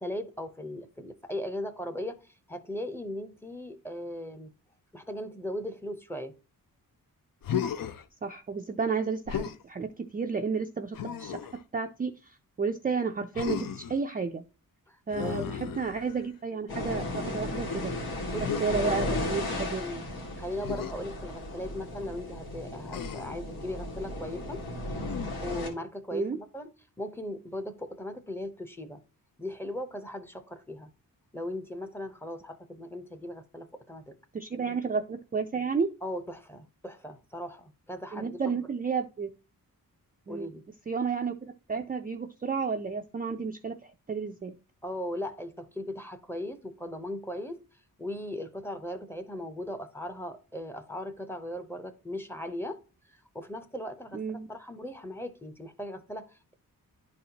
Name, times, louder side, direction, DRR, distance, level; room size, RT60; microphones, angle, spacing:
voice 1, 0.0-4.5 4.9-6.3 14.9-15.8 18.3-19.0 19.8-20.1 20.4-24.6 25.4-29.0 29.4-30.9 31.3-34.1 36.0-38.4 40.3-40.6 44.8-47.6 48.0-52.8 53.3-56.5, left 1 dB, 5° left, 0.7 m, -38 dB
Human voice, 7.4-8.0 9.3-9.6 10.9-11.6 13.3-14.0 15.1-16.3 18.4-18.7 20.6-20.9 22.9-23.4 25.0-25.5, left 8 dB, 65° left, 0.6 m, -34 dB
voice 2, 8.2-11.4 11.7-14.4 15.1-17.9 18.6-19.8 26.1-26.4 34.3-35.9 38.1-39.3 40.3-40.5 40.9-44.5 54.1-54.5, right 5 dB, 25° right, 0.3 m, -32 dB
sound 1, 16.7-25.7, left 1 dB, 85° left, 2.1 m, -35 dB
11.0 x 4.2 x 2.8 m
wide cardioid pair, 160°, 36 cm